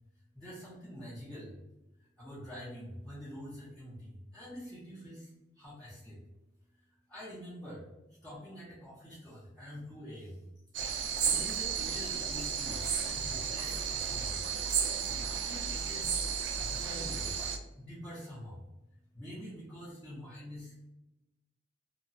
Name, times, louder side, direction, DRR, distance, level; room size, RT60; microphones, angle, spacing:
voice 1, 0.3-1.6 2.2-5.3 5.6-6.2 7.1-7.9 8.2-10.4 11.2-14.4 15.1-16.2 16.6-17.4 17.8-18.6 19.1-20.7, equal, 5° left, -11 dB, 0.8 m, -46 dB
sound 1, 10.7-17.6, right 6 dB, 85° right, 0.4 m, -33 dB
2.9 x 2.2 x 2.7 m, 0.98 s
head